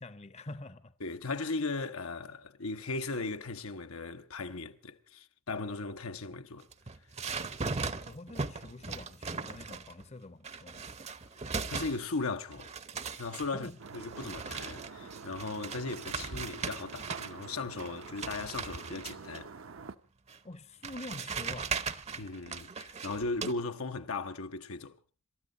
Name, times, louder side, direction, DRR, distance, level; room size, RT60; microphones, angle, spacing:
voice 1, 0.0-0.9 7.6-10.9 13.5-13.8 20.4-21.7, left 2 dB, 30° left, 0.8 m, -46 dB
voice 2, 1.0-6.7 11.7-12.7 13.2-19.5 22.2-25.0, left 3 dB, 85° left, 1.1 m, -37 dB
sound 1, 6.6-10.0 10.4-12.3 12.5-17.5 17.8-19.4 20.3-20.4 20.8-23.5, right 5 dB, 30° right, 0.7 m, -38 dB
sound 2, 13.8-19.9, right 5 dB, 70° right, 0.8 m, -47 dB
27.0 x 13.5 x 3.9 m
head